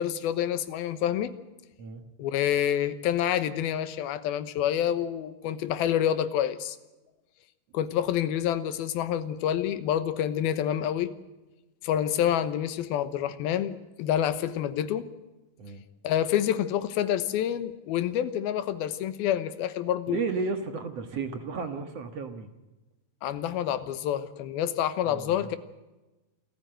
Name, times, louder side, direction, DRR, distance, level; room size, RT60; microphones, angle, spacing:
voice 1, 0.0-1.3 2.2-6.8 7.7-11.1 11.8-15.1 16.0-20.2 23.2-25.6, left 10 dB, 80° left, 13 dB, 3.0 m, -28 dB
voice 2, 20.1-22.5 25.0-25.5, right 4 dB, 55° right, 8 dB, 2.0 m, -33 dB
27.0 x 14.5 x 7.8 m, 1.1 s
omnidirectional pair, 4.3 m